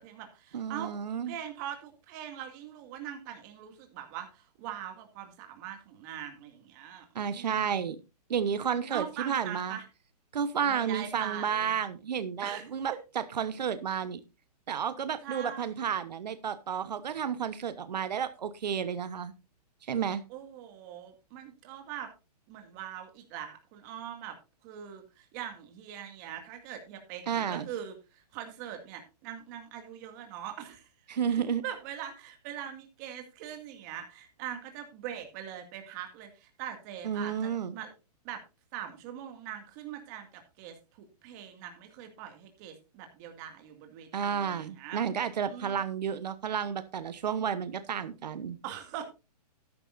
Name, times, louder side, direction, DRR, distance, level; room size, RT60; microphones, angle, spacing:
voice 1, 0.0-0.9 1.2-7.8 8.9-9.8 10.6-11.7 12.4-12.6 12.9-13.0 15.2-15.7 20.3-22.1 22.5-24.4 24.6-30.9 31.3-37.9 38.2-38.4 38.7-45.0 45.5-45.8 48.6-49.0, right 10 dB, 25° right, 5 dB, 2.1 m, -42 dB
voice 2, 0.5-1.3 7.1-8.0 8.3-9.8 10.3-14.2 14.7-19.3 19.8-20.2 27.3-27.7 31.1-31.6 37.0-37.7 44.1-48.6, right 7 dB, 85° right, 13 dB, 1.1 m, -31 dB
13.0 x 11.0 x 2.6 m, 0.28 s
hypercardioid pair, 165°, 21 cm